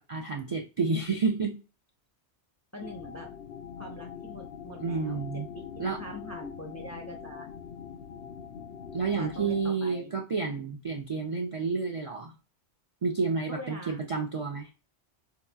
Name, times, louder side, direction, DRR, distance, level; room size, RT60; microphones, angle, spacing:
voice 1, 0.0-1.6 4.8-5.5 5.8-6.0 8.9-12.3 13.0-14.7, right 4 dB, 45° right, 1 dB, 0.4 m, -30 dB
voice 2, 2.7-3.3 3.8-5.2 5.5-7.5 9.2-10.1 13.5-14.0, equal, 20° left, 1 dB, 0.5 m, -43 dB
sound 1, 2.8-9.7, left 7 dB, 65° left, 0.7 m, -43 dB
4.6 x 2.9 x 2.2 m, 0.31 s
omnidirectional pair, 1.2 m